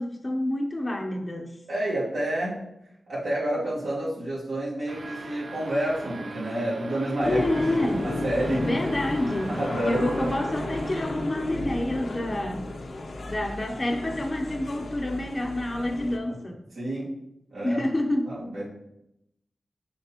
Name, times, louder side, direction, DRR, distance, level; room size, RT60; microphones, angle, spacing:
voice 1, 0.0-1.6 7.2-8.1 8.7-9.6 9.8-12.7 13.3-16.6 17.6-18.4, left 1 dB, 30° left, 3 dB, 0.7 m, -28 dB
voice 2, 1.7-2.6 3.1-7.4 8.0-8.7 9.5-10.4 16.3-16.4 16.7-17.1 17.5-17.8 18.2-18.7, right 1 dB, 85° right, -8 dB, 2.4 m, -29 dB
sound 1, 4.9-11.5, right 3 dB, 60° right, 0.5 m, -40 dB
sound 2, 7.2-16.2, left 2 dB, 70° left, 0.7 m, -34 dB
6.6 x 5.2 x 2.9 m, 0.85 s
wide cardioid pair, 80°, 0 cm